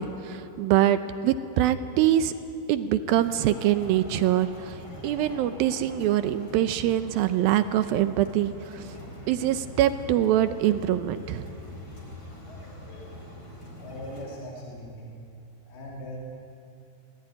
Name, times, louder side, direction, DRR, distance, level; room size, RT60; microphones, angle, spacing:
voice 1, 0.0-2.3 2.7-8.9 9.3-11.5, right 12 dB, 80° right, 11 dB, 2.4 m, -24 dB
sound 1, 3.1-14.3, left 1 dB, 25° left, 4.9 m, -43 dB
voice 2, 13.8-15.2 15.7-16.2, left 1 dB, 75° left, -3 dB, 4.6 m, -40 dB
24.0 x 18.0 x 9.8 m, 2.8 s
omnidirectional pair, 4.5 m